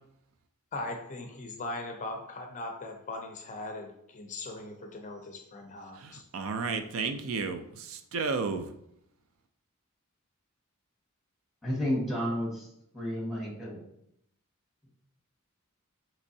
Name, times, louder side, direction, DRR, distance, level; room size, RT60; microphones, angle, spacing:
voice 1, 0.7-6.3, left 2 dB, 35° left, 3 dB, 0.5 m, -39 dB
voice 2, 6.0-8.7, right 4 dB, 70° right, 8 dB, 0.4 m, -32 dB
voice 3, 11.6-12.7 12.9-13.8, equal, ahead, -4 dB, 1.4 m, -31 dB
5.2 x 3.0 x 2.7 m, 0.75 s
head